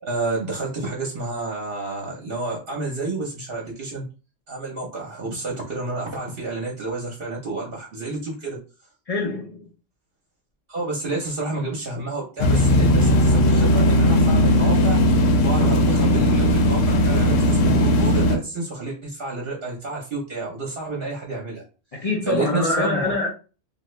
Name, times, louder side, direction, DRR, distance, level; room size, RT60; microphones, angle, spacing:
voice 1, 0.0-4.0 4.5-8.6 10.7-21.6 22.3-23.1, right 2 dB, 55° right, 0.9 m, -29 dB
voice 2, 9.1-9.7 21.9-23.3, left 2 dB, 50° left, 0.4 m, -24 dB
sound 1, 12.4-18.4, left 1 dB, 90° left, 1.0 m, -17 dB
2.7 x 2.4 x 3.1 m
omnidirectional pair, 1.3 m